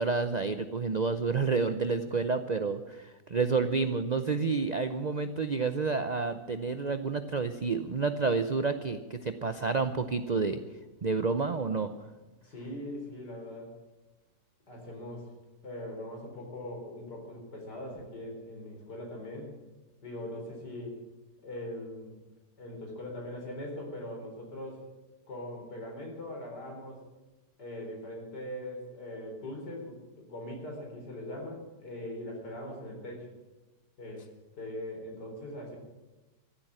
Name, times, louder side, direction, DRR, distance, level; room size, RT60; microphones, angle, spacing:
voice 1, 0.0-10.6 11.0-11.9, right 4 dB, 85° right, 9 dB, 0.3 m, -29 dB
voice 2, 12.4-13.7 14.7-15.3 15.6-19.5 20.0-21.0 21.4-22.2 22.6-24.9 25.3-27.0 27.6-33.3 34.0-34.3 34.5-35.8, left 1 dB, 75° left, 1 dB, 4.8 m, -41 dB
14.5 x 9.0 x 10.0 m, 1.1 s
omnidirectional pair, 1.8 m